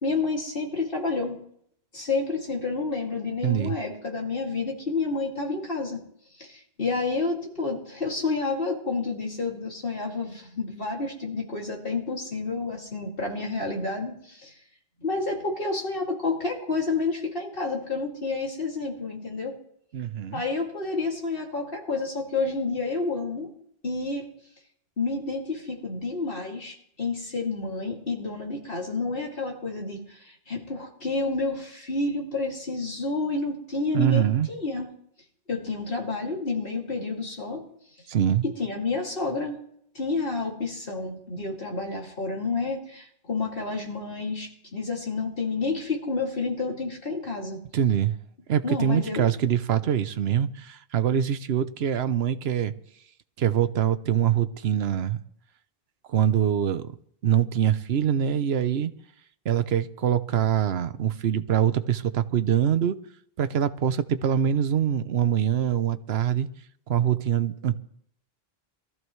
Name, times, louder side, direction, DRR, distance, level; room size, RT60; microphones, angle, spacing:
voice 1, 0.0-1.4 1.9-6.0 6.4-14.5 15.0-19.5 20.3-23.5 23.8-24.3 25.0-34.9 35.5-37.6 38.4-39.6 39.9-47.6 48.6-49.3, left 3 dB, 60° left, 2.8 m, -29 dB
voice 2, 3.4-3.7 19.9-20.4 33.9-34.5 38.1-38.4 47.7-48.2 48.5-52.7 53.4-55.2 56.1-56.9 57.2-58.9 59.4-63.0 63.4-66.5 66.9-67.8, right 9 dB, 75° right, 1.0 m, -24 dB
22.5 x 14.0 x 3.2 m
omnidirectional pair, 1.1 m